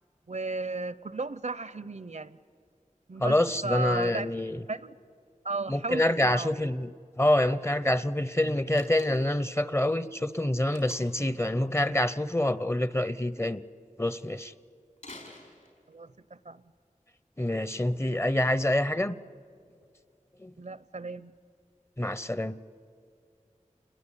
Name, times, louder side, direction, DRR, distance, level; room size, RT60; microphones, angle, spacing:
voice 1, 0.3-2.4 3.1-3.4 3.6-4.3 4.7-4.9 5.4-6.6 15.9-16.1 16.5-16.6 20.6-21.3, right 3 dB, 60° right, 17 dB, 0.6 m, -34 dB
voice 2, 3.2-4.6 5.7-13.6 14.0-14.5 17.4-19.2 20.4-20.5 22.0-22.6, left 1 dB, 20° left, 17 dB, 0.7 m, -26 dB
Slam, 8.7-9.4 10.7-11.3 15.0-16.1, left 2 dB, 70° left, 4.9 m, -48 dB
28.0 x 20.5 x 9.9 m, 2.3 s
wide cardioid pair, 45°, 14 cm